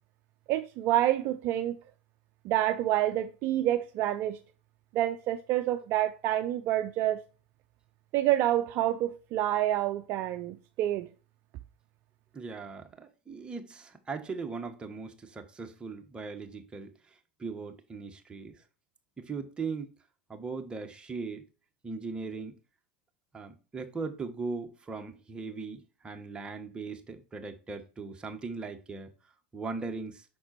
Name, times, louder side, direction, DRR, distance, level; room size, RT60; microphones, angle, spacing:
voice 1, 0.5-1.8 2.4-4.4 4.9-7.2 8.1-11.1, right 13 dB, 50° right, 0.5 m, -28 dB
voice 2, 12.3-16.9 17.4-18.5 19.2-19.9 20.3-21.4 21.8-22.6 23.3-29.1 29.5-30.2, right 4 dB, 20° right, 1.3 m, -39 dB
6.0 x 4.3 x 4.2 m
hypercardioid pair, 90°, 5 cm